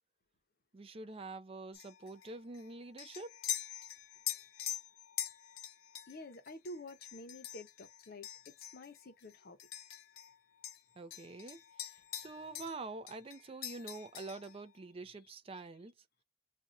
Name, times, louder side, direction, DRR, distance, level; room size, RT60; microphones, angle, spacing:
voice 1, 0.7-3.4 11.0-15.9, right 3 dB, 30° right, 0.4 m, -46 dB
sound 1, 1.7-10.4 10.6-12.8 13.1-14.6, left 11 dB, 90° left, 0.5 m, -44 dB
voice 2, 6.1-9.6 15.0-15.6, left 1 dB, 50° left, 0.7 m, -50 dB
2.5 x 2.3 x 4.1 m
head